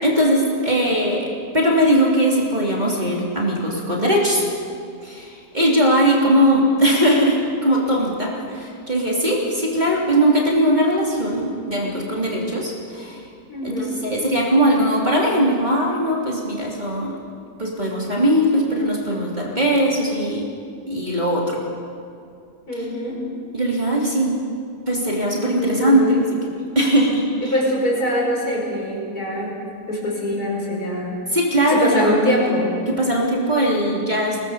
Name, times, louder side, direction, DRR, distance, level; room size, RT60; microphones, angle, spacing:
voice 1, 0.0-1.3 1.5-4.4 5.0-13.2 13.6-17.1 17.6-20.5 20.9-21.6 22.7-22.8 23.5-24.3 24.9-26.2 26.7-27.5 31.3-32.2 32.9-34.4, equal, 25° right, -3 dB, 3.2 m, -20 dB
voice 2, 13.5-14.0 22.7-23.2 25.6-26.2 27.4-29.5 29.9-31.2 31.7-32.7, left 1 dB, 60° left, -3 dB, 5.8 m, -23 dB
22.5 x 18.5 x 6.9 m, 2.4 s
omnidirectional pair, 1.8 m